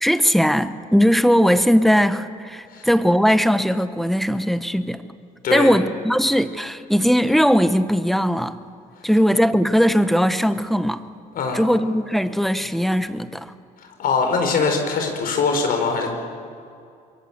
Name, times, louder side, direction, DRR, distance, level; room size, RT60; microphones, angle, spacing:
voice 1, 0.0-5.0 5.5-8.6 9.0-11.0 11.5-13.5, equal, ahead, 12 dB, 1.0 m, -19 dB
voice 2, 11.3-11.6 13.8-16.1, left 4 dB, 60° left, 4 dB, 4.6 m, -22 dB
25.5 x 22.5 x 7.3 m, 2.4 s
cardioid pair, 110°, 17 cm